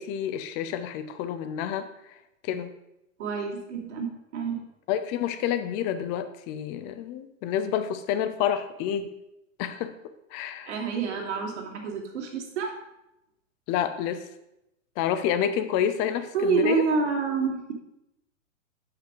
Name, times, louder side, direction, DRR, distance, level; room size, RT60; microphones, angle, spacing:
voice 1, 0.0-1.9 2.4-2.7 4.9-9.1 9.6-9.9 10.3-10.7 13.7-14.2 15.0-16.8, left 9 dB, 25° left, 10 dB, 0.6 m, -28 dB
voice 2, 3.2-4.6 10.7-12.8 16.3-17.7, right 5 dB, 55° right, 1 dB, 2.2 m, -28 dB
7.5 x 5.8 x 5.1 m, 0.88 s
hypercardioid pair, 110°, 40 cm